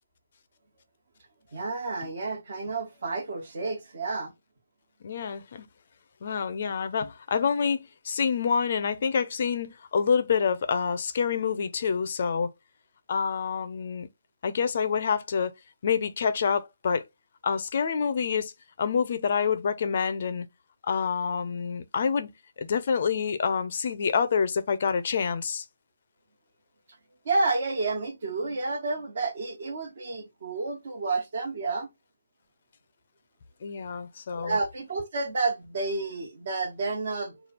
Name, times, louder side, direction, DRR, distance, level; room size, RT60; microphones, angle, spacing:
voice 1, 1.5-4.3 27.2-31.9 34.3-37.4, right 3 dB, 45° right, 1.3 m, -30 dB
voice 2, 5.0-5.7 6.2-12.5 13.1-14.1 14.4-15.5 15.8-17.0 17.4-18.5 18.8-20.5 20.8-22.3 22.6-25.7 33.6-34.6, left 6 dB, 45° left, 0.5 m, -27 dB
3.2 x 2.3 x 4.3 m
hypercardioid pair, 165°, 0 cm